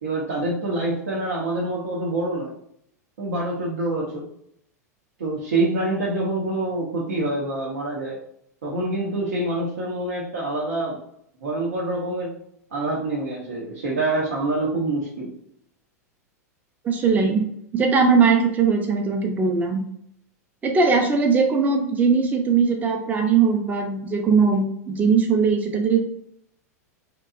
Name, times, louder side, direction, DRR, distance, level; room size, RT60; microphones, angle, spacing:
voice 1, 0.0-2.5 3.2-4.3 5.2-8.2 8.6-11.0 11.4-12.3 12.7-15.3, right 2 dB, 65° right, -5 dB, 0.7 m, -26 dB
voice 2, 16.8-17.4 17.7-19.8 20.6-26.0, right 5 dB, 20° right, 4 dB, 0.5 m, -20 dB
2.8 x 2.2 x 2.4 m, 0.71 s
figure-of-eight pair, 90°, 9 cm